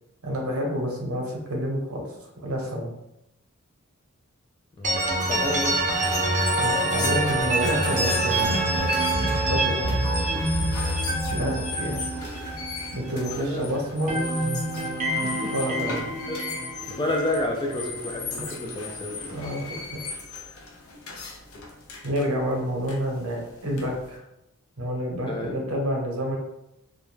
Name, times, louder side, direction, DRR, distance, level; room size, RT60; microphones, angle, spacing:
voice 1, 0.2-2.1 2.4-2.9 6.6-8.7 9.2-10.1 11.3-12.0 12.9-14.4 15.5-16.0 19.3-19.6 19.9-20.0 22.0-24.2 24.8-26.4, equal, 80° right, 0 dB, 0.7 m, -29 dB
voice 2, 4.8-5.8 11.3-11.6 13.4-13.8 15.2-15.5 16.3-16.4 16.9-19.4 25.3-25.6, left 1 dB, 20° left, 1 dB, 0.3 m, -30 dB
sound 1, 4.8-13.6 13.9-18.0, right 1 dB, 35° right, 0.5 m, -26 dB
sound 2, 4.9-24.2, left 4 dB, 80° left, 0.5 m, -37 dB
2.3 x 2.1 x 3.1 m, 0.87 s
head